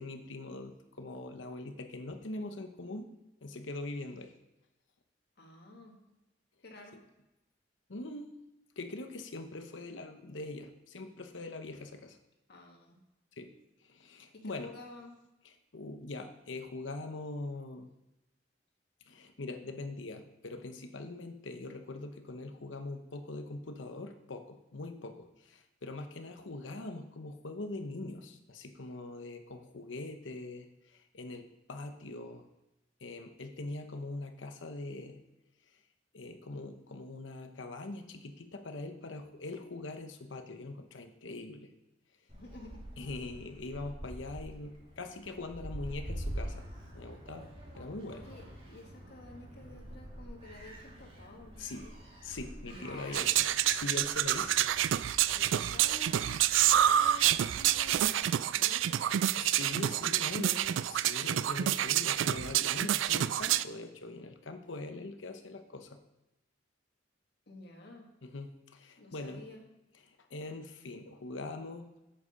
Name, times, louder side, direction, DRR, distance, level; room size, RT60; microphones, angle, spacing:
voice 1, 0.0-3.1 3.4-4.3 7.9-8.3 8.8-12.2 13.3-13.5 13.8-14.7 15.4-17.9 19.1-32.4 33.0-35.2 35.7-35.8 36.1-41.7 43.0-46.7 46.9-47.5 47.7-48.2 51.6-51.9 52.2-54.7 59.4-60.6 60.9-66.0 68.2-69.4 70.3-71.9, left 2 dB, 85° left, 6 dB, 0.9 m, -42 dB
voice 2, 5.4-6.0 6.6-7.0 12.5-13.0 14.3-15.1 42.3-42.8 48.1-51.9 52.7-53.2 55.3-56.4 56.7-59.1 60.2-60.8 67.5-68.1 69.0-69.6, left 2 dB, 60° left, 1 dB, 2.0 m, -51 dB
Gull seagull, 42.3-58.0, right 1 dB, 30° right, 2.7 m, -46 dB
sound 1, 53.1-63.6, right 11 dB, 85° right, 0.3 m, -28 dB
8.3 x 8.0 x 5.1 m, 0.96 s
head